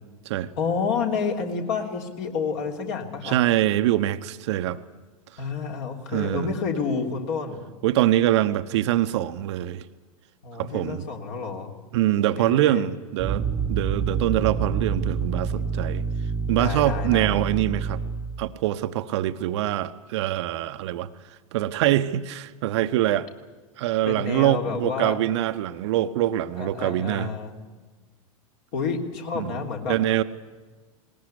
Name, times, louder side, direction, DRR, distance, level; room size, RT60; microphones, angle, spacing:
voice 1, 0.6-3.3 5.4-7.6 10.4-11.7 12.4-12.9 16.6-17.3 24.0-25.2 26.6-27.5 28.7-29.9, left 5 dB, 45° left, 2 dB, 3.4 m, -29 dB
voice 2, 3.2-4.8 6.1-6.5 7.8-9.8 10.6-11.0 11.9-16.0 16.5-18.0 18.4-21.1 21.5-23.3 23.8-27.3 29.4-30.2, right 13 dB, 50° right, 10 dB, 0.9 m, -24 dB
sound 1, 13.2-18.5, right 6 dB, 20° right, 1.2 m, -27 dB
20.5 x 19.5 x 9.9 m, 1.3 s
figure-of-eight pair, 95°, 18 cm